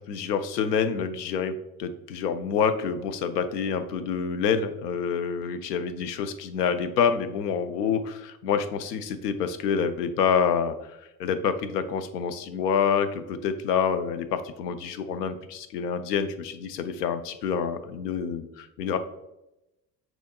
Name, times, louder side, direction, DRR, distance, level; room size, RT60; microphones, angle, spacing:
voice 1, 0.1-10.7 11.2-19.0, left 6 dB, 80° left, 10 dB, 0.5 m, -27 dB
6.2 x 2.9 x 2.2 m, 0.90 s
hypercardioid pair, 60°, 48 cm